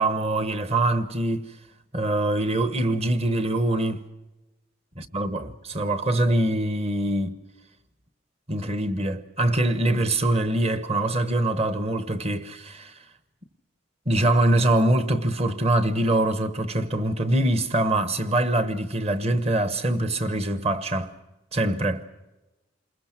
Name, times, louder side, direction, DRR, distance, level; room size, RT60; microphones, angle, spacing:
voice 1, 0.0-1.5 1.9-4.0 5.0-7.4 8.5-12.9 14.1-21.1 21.5-22.0, right 1 dB, 30° right, 1.1 m, -24 dB
28.5 x 21.5 x 5.9 m
head